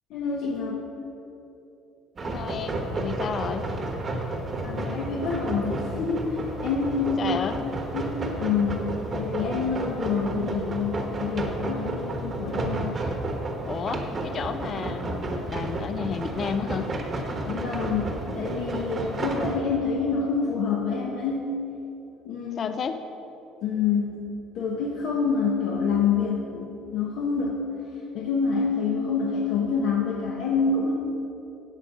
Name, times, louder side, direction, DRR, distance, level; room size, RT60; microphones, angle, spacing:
voice 1, 0.1-0.8 4.6-7.4 7.9-12.9 17.4-21.5 22.2-22.7 23.6-24.3 24.5-27.6 28.1-30.9, left 5 dB, 65° left, -2 dB, 1.1 m, -27 dB
voice 2, 2.2-3.7 7.2-7.5 13.6-17.0 22.6-23.0, left 6 dB, 30° left, 9 dB, 0.4 m, -32 dB
sound 1, 2.2-19.6, right 2 dB, 25° right, 1.1 m, -31 dB
16.0 x 5.6 x 5.1 m, 3.0 s
cardioid pair, 160°, 0 cm